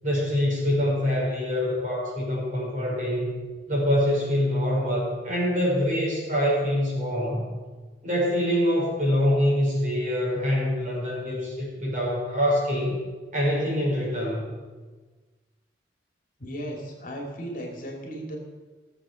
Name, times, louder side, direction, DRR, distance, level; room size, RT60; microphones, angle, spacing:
voice 1, 0.0-7.5 8.0-13.0 13.3-14.5, equal, 45° right, -4 dB, 5.1 m, -25 dB
voice 2, 16.4-18.4, equal, 50° left, 0 dB, 2.4 m, -35 dB
16.5 x 7.4 x 6.3 m, 1.4 s
head